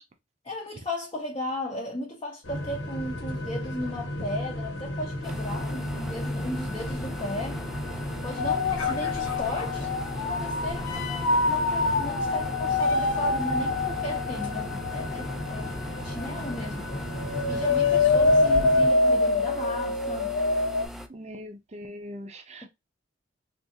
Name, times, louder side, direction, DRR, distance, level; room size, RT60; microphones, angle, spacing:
voice 1, 0.4-7.6 8.2-9.9 10.2-15.8 16.0-16.9 17.5-20.4 22.6-22.7, left 1 dB, 30° left, 0.7 m, -35 dB
sound 1, 2.4-18.9, left 1 dB, 90° left, 1.3 m, -35 dB
sound 2, 5.2-21.1, equal, ahead, 0.4 m, -40 dB
sound 3, 8.4-16.6 16.9-20.9, left 3 dB, 75° left, 0.5 m, -25 dB
voice 2, 21.1-22.7, equal, 35° right, 0.6 m, -41 dB
3.6 x 2.4 x 2.7 m
head